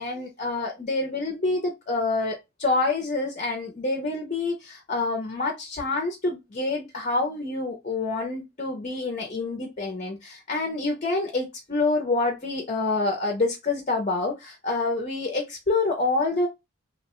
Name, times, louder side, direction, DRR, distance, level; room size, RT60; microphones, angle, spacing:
voice 1, 0.0-16.5, left 3 dB, 35° left, 2 dB, 0.5 m, -27 dB
2.6 x 2.1 x 2.9 m, 0.22 s
head